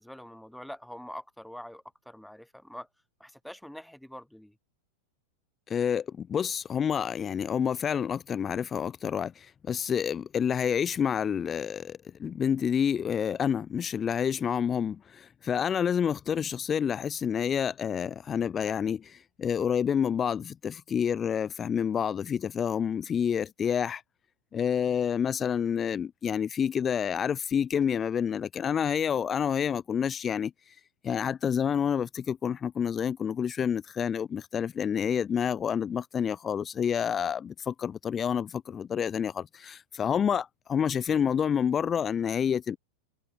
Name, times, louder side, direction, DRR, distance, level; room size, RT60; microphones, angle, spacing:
voice 1, 0.0-2.9 3.2-4.6, equal, ahead, 6.0 m, -44 dB
voice 2, 5.7-24.0 24.5-30.5 31.0-42.8, left 8 dB, 20° left, 0.9 m, -28 dB
figure-of-eight pair, 90°, 0 cm